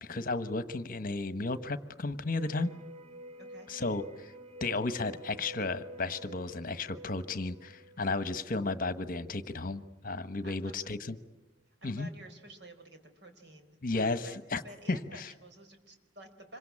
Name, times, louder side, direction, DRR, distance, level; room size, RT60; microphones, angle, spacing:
voice 1, 0.0-2.7 3.7-4.3 4.6-11.1 11.8-12.1 13.8-14.6 14.9-15.3, left 3 dB, 50° left, 12 dB, 1.2 m, -33 dB
sound 1, 2.4-10.1 10.5-10.6, right 1 dB, 30° right, 1.1 m, -50 dB
voice 2, 3.4-3.7 10.4-10.8 11.8-14.4 14.6-16.6, right 1 dB, 65° right, 6 dB, 4.5 m, -51 dB
26.5 x 23.5 x 8.7 m, 0.98 s
head